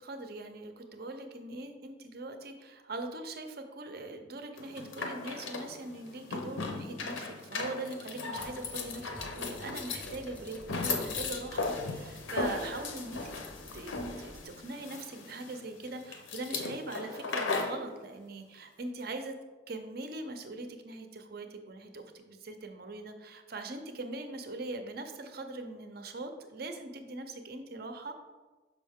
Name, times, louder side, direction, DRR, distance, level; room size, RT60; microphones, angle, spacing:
voice 1, 0.0-13.5 13.7-19.3 19.7-28.1, right 2 dB, 50° right, 6 dB, 0.6 m, -41 dB
sound 1, 4.6-17.8, left 3 dB, 85° left, 0.7 m, -37 dB
sound 2, 8.3-14.4, equal, 10° left, 0.6 m, -50 dB
6.3 x 5.1 x 3.6 m, 1.3 s
head